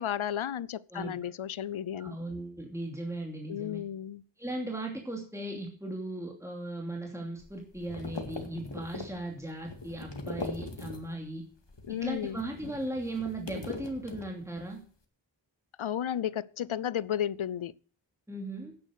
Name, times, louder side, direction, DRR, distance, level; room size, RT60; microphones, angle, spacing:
voice 1, 0.0-2.2 3.5-4.2 11.9-12.4 15.8-17.8, left 10 dB, 85° left, 0.6 m, -33 dB
voice 2, 2.0-3.8 4.4-11.4 11.9-14.8 18.3-18.7, right 1 dB, 5° right, 2.7 m, -37 dB
sound 1, 7.4-11.3 11.6-14.7, left 3 dB, 65° left, 2.2 m, -41 dB
10.5 x 9.2 x 6.4 m
wide cardioid pair, 45°, 47 cm